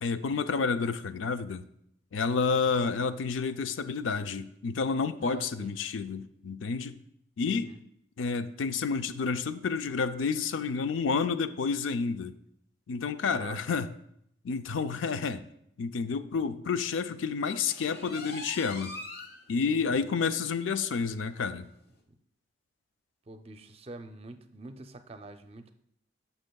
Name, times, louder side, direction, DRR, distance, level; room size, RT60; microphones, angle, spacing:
voice 1, 0.0-1.6 2.1-7.0 7.4-7.7 8.2-12.3 12.9-13.9 14.4-15.4 15.8-18.9 19.5-21.7, left 5 dB, 85° left, 11 dB, 0.4 m, -30 dB
voice 2, 2.4-2.7 5.2-5.8 7.5-7.8 13.3-13.6 19.7-20.1 23.3-25.7, right 2 dB, 30° right, 8 dB, 0.5 m, -45 dB
sound 1, 17.7-19.4 19.8-19.9 20.4-20.5 20.8-20.9 21.9-22.0, left 2 dB, 55° left, 1.0 m, -42 dB
11.5 x 6.0 x 2.3 m, 0.73 s
head